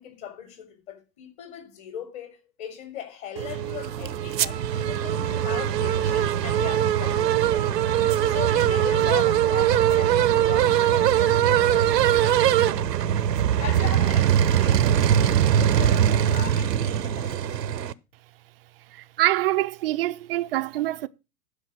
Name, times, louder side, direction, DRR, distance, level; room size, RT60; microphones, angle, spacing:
voice 1, 0.0-7.7 7.9-13.1 13.3-17.9, left 9 dB, 35° left, 4.2 m, -39 dB
sound 1, 3.4-17.9, right 10 dB, 75° right, 0.8 m, -21 dB
voice 2, 18.9-21.1, right 16 dB, 35° right, 0.6 m, -25 dB
11.5 x 5.3 x 6.1 m
hypercardioid pair, 115°, 50 cm